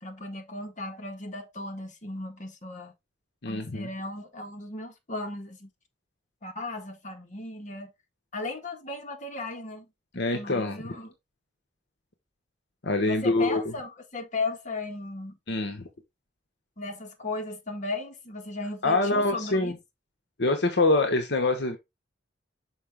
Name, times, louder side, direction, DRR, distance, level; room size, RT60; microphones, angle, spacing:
voice 1, 0.0-2.9 3.4-5.7 6.4-7.9 8.3-9.9 10.3-11.1 13.1-15.4 16.8-19.8, left 2 dB, 40° left, 1.6 m, -36 dB
voice 2, 3.4-3.9 10.1-10.8 12.8-13.7 15.5-15.9 18.8-19.7 20.4-21.8, left 2 dB, 65° left, 1.1 m, -25 dB
6.4 x 4.9 x 3.5 m
head